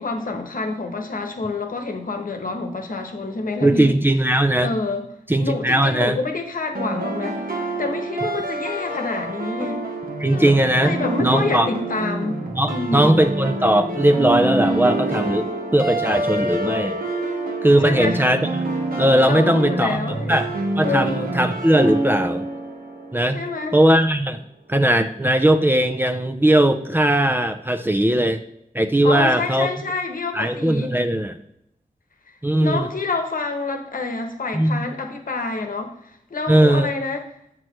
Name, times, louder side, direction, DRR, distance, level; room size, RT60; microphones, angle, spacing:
voice 1, 0.0-4.0 4.6-5.0 5.4-7.4 7.8-9.9 10.2-12.4 12.7-13.1 17.8-18.2 19.2-20.4 20.8-21.3 23.3-23.7 29.0-30.9 32.6-35.9 36.3-37.2, left 3 dB, 70° left, 5 dB, 1.0 m, -27 dB
voice 2, 3.6-4.7 5.3-6.2 10.2-10.9 11.2-11.7 12.6-17.0 17.6-18.4 19.0-20.0 20.3-20.5 20.8-22.5 23.1-23.4 23.7-24.4 24.7-28.4 28.7-29.7 30.3-31.3 32.4-32.9 34.5-34.8 36.5-36.9, right 1 dB, 15° right, 8 dB, 0.4 m, -18 dB
sound 1, 6.7-23.6, right 2 dB, 80° right, 1.2 m, -27 dB
7.5 x 6.1 x 3.1 m, 0.76 s
wide cardioid pair, 105°, 15 cm